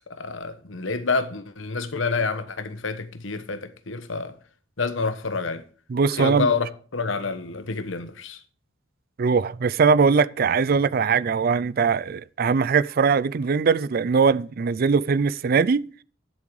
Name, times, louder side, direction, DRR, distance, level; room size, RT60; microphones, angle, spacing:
voice 1, 0.1-4.4 4.8-5.6 6.2-6.7 6.9-8.4, left 4 dB, 80° left, 1.1 m, -28 dB
voice 2, 5.9-6.5 9.2-15.9, right 5 dB, 50° right, 0.4 m, -21 dB
11.5 x 7.2 x 4.7 m
head